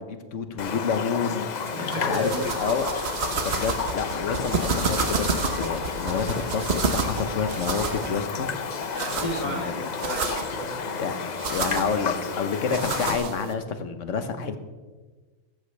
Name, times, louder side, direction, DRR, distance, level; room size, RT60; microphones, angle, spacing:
voice 1, 0.0-2.9 3.4-8.5 9.2-9.9 11.0-11.2 11.5-14.6, left 5 dB, 65° left, 9 dB, 1.3 m, -29 dB
Raindrop, 0.6-13.2, left 6 dB, 50° left, 0.5 m, -32 dB
sound 1, 1.6-13.5, right 4 dB, 55° right, 1.2 m, -31 dB
voice 2, 1.7-2.5 3.2-3.3 8.9-11.0, equal, 30° right, -2 dB, 3.3 m, -32 dB
14.5 x 13.5 x 3.3 m, 1.3 s
omnidirectional pair, 1.4 m